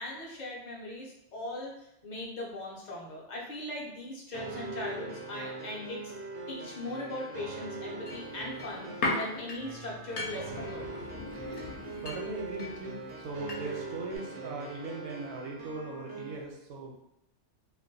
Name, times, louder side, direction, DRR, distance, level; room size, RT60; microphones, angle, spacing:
voice 1, 0.0-1.7 2.0-6.1 6.5-10.9, left 1 dB, 50° left, -2 dB, 0.6 m, -39 dB
sound 1, 4.3-16.4, right 3 dB, 60° right, 0.5 m, -42 dB
sound 2, 8.1-13.9 14.1-14.2, left 2 dB, 75° left, 0.9 m, -38 dB
voice 2, 11.7-16.9, right 3 dB, 75° right, 0 dB, 0.9 m, -39 dB
2.4 x 2.2 x 2.6 m, 0.79 s
omnidirectional pair, 1.2 m